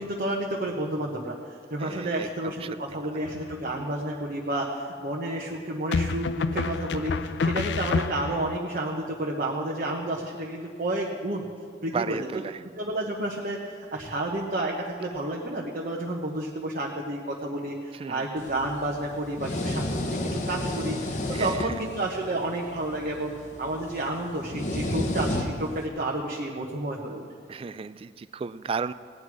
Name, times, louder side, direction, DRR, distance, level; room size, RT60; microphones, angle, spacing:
voice 1, 0.0-11.4 11.8-12.3 12.8-14.7 15.0-23.3 23.6-27.2, right 1 dB, 50° right, -2 dB, 1.1 m, -31 dB
voice 2, 1.8-2.7 11.9-12.6 18.0-18.2 21.3-21.8 27.5-28.9, right 5 dB, 30° right, 14 dB, 0.3 m, -34 dB
sound 1, 3.2-3.8 5.9-8.6, left 4 dB, 75° left, 0.4 m, -29 dB
sound 2, 18.4-25.9, left 1 dB, 45° left, 1.0 m, -32 dB
17.0 x 9.4 x 4.8 m, 2.1 s
head